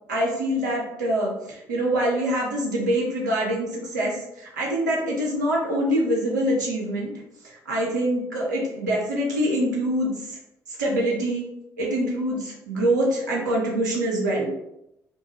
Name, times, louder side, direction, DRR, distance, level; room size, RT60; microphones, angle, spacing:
voice 1, 0.1-7.1 7.4-10.4 10.7-11.5 11.8-14.5, right 1 dB, 85° right, -3 dB, 0.5 m, -25 dB
2.2 x 2.2 x 3.1 m, 0.83 s
hypercardioid pair, 45°, 9 cm